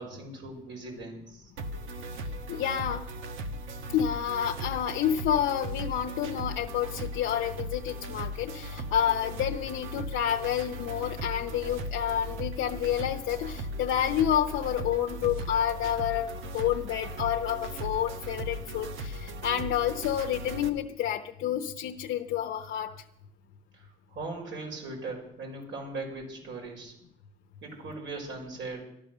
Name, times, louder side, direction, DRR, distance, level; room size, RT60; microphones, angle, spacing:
voice 1, 0.0-1.5 23.7-26.9 27.6-28.8, right 3 dB, 70° right, 0 dB, 5.6 m, -39 dB
sound 1, 1.6-20.7, right 1 dB, 90° right, 1.2 m, -38 dB
voice 2, 2.5-3.1 3.9-22.9, left 10 dB, 85° left, 3 dB, 0.8 m, -29 dB
14.0 x 11.5 x 6.7 m, 0.77 s
cardioid pair, 90°, 20 cm